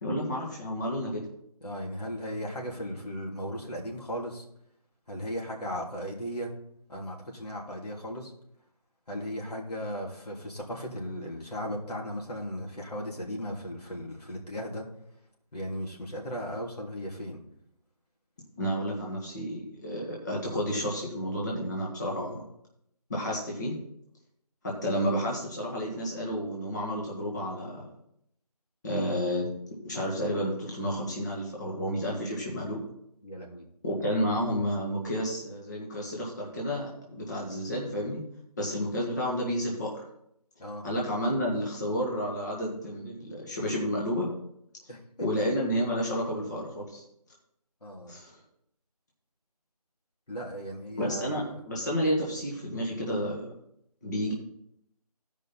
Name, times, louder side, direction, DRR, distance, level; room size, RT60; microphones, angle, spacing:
voice 1, 0.0-1.2 18.6-22.4 23.1-23.7 24.6-27.9 28.8-29.5 29.8-32.8 33.8-38.2 38.6-40.0 40.8-44.3 45.2-47.0 48.1-48.4 51.0-53.5 54.0-54.3, equal, 30° left, -4 dB, 1.7 m, -31 dB
voice 2, 1.6-4.4 5.1-6.5 6.9-8.3 9.1-14.9 15.5-17.4 33.2-33.6 40.6-40.8 44.9-45.4 47.8-48.1 50.3-51.4, equal, 80° left, -2 dB, 3.1 m, -36 dB
14.5 x 5.3 x 4.2 m, 0.75 s
figure-of-eight pair, 170°, 20 cm